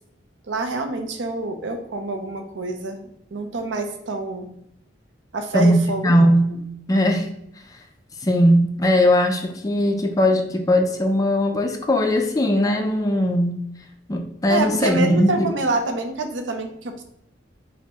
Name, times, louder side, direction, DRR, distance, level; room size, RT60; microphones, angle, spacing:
voice 1, 0.5-4.5 5.3-6.3 14.5-17.0, right 3 dB, 80° right, 6 dB, 0.5 m, -27 dB
voice 2, 5.5-6.5 6.9-7.3 8.2-13.6 14.1-15.5, equal, 20° left, 4 dB, 0.3 m, -19 dB
5.3 x 2.1 x 2.8 m, 0.76 s
head